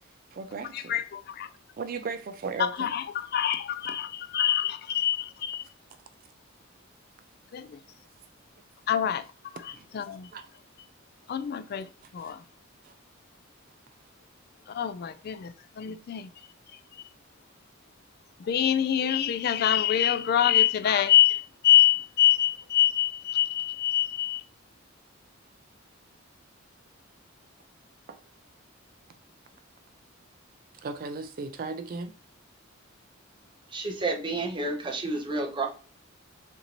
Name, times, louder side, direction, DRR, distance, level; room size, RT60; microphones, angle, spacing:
voice 1, 0.3-1.0 1.7-2.9 9.7-9.9 10.3-10.5 12.0-12.3 12.8-12.9 15.8-16.0 28.1-28.2 30.8-32.1, right 4 dB, 45° right, 0.4 m, -36 dB
voice 2, 0.9-1.5 2.8-5.6 7.5-7.6 8.9-9.2 9.9-10.3 11.3-11.8 12.1-12.4 14.7-16.3 18.5-24.4, left 11 dB, 50° left, 0.3 m, -25 dB
voice 3, 33.7-35.7, right 2 dB, 25° right, 0.9 m, -30 dB
6.9 x 2.6 x 2.9 m
head